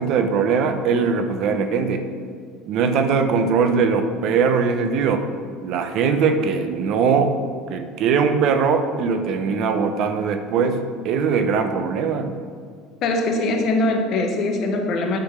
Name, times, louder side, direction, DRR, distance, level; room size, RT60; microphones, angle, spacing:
voice 1, 0.0-2.0 2.7-5.3 5.6-7.3 7.7-12.3, right 5 dB, 55° right, 8 dB, 0.7 m, -21 dB
voice 2, 13.0-15.2, left 2 dB, 50° left, 3 dB, 1.2 m, -22 dB
9.0 x 3.9 x 6.6 m, 2.1 s
cardioid pair, 135°, 0 cm